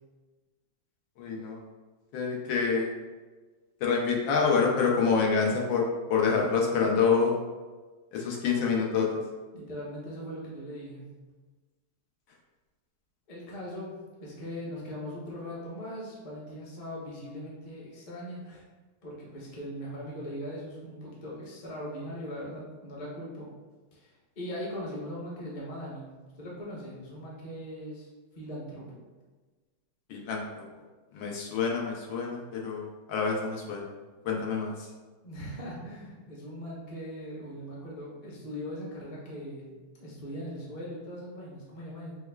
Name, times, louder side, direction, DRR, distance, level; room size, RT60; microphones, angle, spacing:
voice 1, 1.2-1.6 2.1-2.9 3.8-7.3 8.1-9.1 30.1-30.6 31.1-33.8 34.2-34.9, left 5 dB, 85° left, -1 dB, 1.5 m, -27 dB
voice 2, 9.5-11.1 13.3-18.6 19.0-23.5 23.9-28.1 28.3-29.0 35.2-39.6 40.0-42.2, equal, 35° left, -5 dB, 0.5 m, -40 dB
6.1 x 2.3 x 2.2 m, 1.3 s
omnidirectional pair, 2.1 m